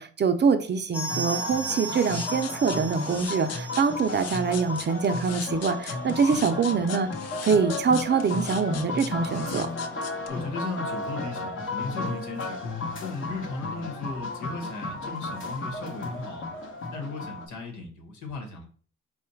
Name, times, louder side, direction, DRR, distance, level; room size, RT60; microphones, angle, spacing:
voice 1, 0.0-7.1 7.4-9.7, right 5 dB, 35° right, 8 dB, 0.5 m, -24 dB
sound 1, 0.9-11.5 11.7-11.8 12.1-12.2 12.8-12.9, right 2 dB, 5° left, 0.8 m, -40 dB
sound 2, 1.1-17.5, left 2 dB, 40° left, 0.9 m, -34 dB
sound 3, 1.9-10.3, left 8 dB, 55° left, 0.6 m, -39 dB
voice 2, 6.2-6.6 10.3-12.6 13.0-16.5 16.9-18.7, left 3 dB, 80° left, 3 dB, 1.4 m, -36 dB
4.2 x 2.4 x 4.4 m, 0.43 s
cardioid pair, 90°, 30 cm